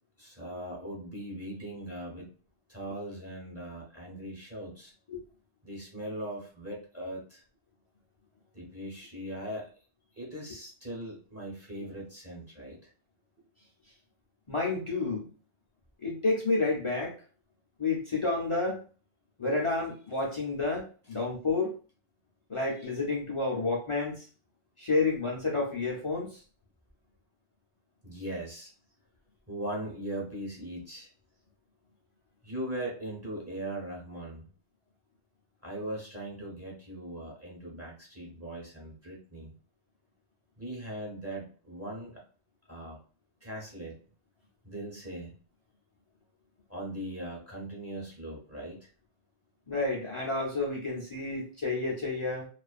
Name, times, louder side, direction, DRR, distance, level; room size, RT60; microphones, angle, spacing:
voice 1, 0.2-2.3 2.7-4.9 5.6-7.4 8.5-9.7 10.2-12.8 28.0-28.7 29.5-31.1 32.4-34.5 35.6-39.5 40.6-42.2 42.7-43.0 43.4-44.0 44.6-45.3 46.7-48.9, right 1 dB, 15° right, -4 dB, 0.8 m, -39 dB
voice 2, 14.5-15.3 16.0-17.2 17.8-18.8 19.4-21.8 22.5-24.3 24.8-26.4 49.7-52.5, left 3 dB, 45° left, -3 dB, 0.4 m, -30 dB
2.4 x 2.3 x 2.3 m, 0.38 s
omnidirectional pair, 1.2 m